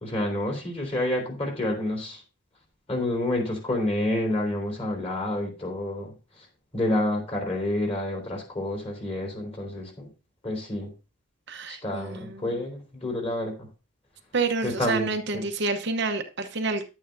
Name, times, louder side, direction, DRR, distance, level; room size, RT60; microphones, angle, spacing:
voice 1, 0.0-2.2 2.9-6.1 6.7-10.1 10.4-10.9 11.7-13.7 14.6-15.4, left 1 dB, 30° left, 1 dB, 3.5 m, -29 dB
voice 2, 11.5-12.6 14.3-16.8, right 3 dB, 55° right, 6 dB, 0.9 m, -28 dB
11.0 x 8.8 x 2.6 m, 0.31 s
head